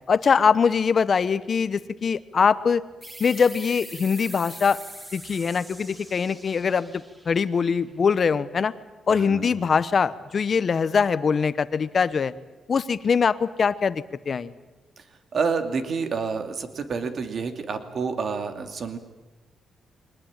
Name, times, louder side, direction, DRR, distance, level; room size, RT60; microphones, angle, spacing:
voice 1, 0.1-2.8 3.2-4.8 5.1-6.9 7.3-8.7 9.1-12.3 12.7-14.5, left 6 dB, 45° left, 15 dB, 1.0 m, -22 dB
sound 1, 3.0-8.3, right 1 dB, 15° right, 4.1 m, -43 dB
voice 2, 9.1-9.6 15.0-15.1 15.3-19.0, right 5 dB, 50° right, 7 dB, 2.6 m, -29 dB
22.5 x 20.0 x 8.9 m, 1.2 s
cardioid pair, 95°, 0 cm